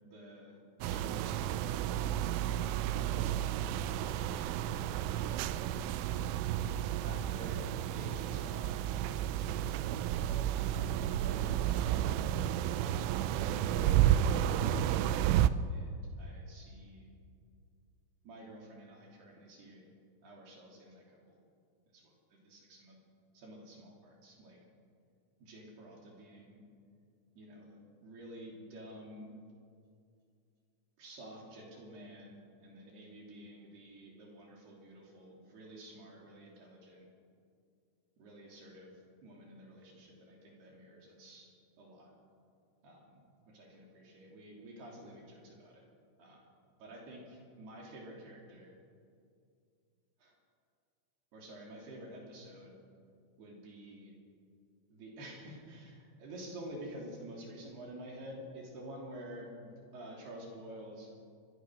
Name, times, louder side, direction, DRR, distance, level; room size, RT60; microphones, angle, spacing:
voice 1, 0.0-2.0 2.5-4.2 7.0-9.8 10.5-12.1 12.8-13.3 13.7-14.7 15.7-17.1 18.2-19.9 20.2-21.4 21.9-23.0 23.3-24.6 25.4-26.6 27.4-29.3 31.0-37.1 38.2-41.5 41.8-42.1 42.8-45.8 46.2-46.4 46.8-48.7 50.2-50.3 51.3-52.8 53.4-54.1 54.9-61.1, right 1 dB, 60° right, -1 dB, 5.1 m, -50 dB
sound 1, 0.8-15.5, right 11 dB, 90° right, 3.2 m, -31 dB
27.5 x 21.5 x 6.4 m, 2.3 s
omnidirectional pair, 5.5 m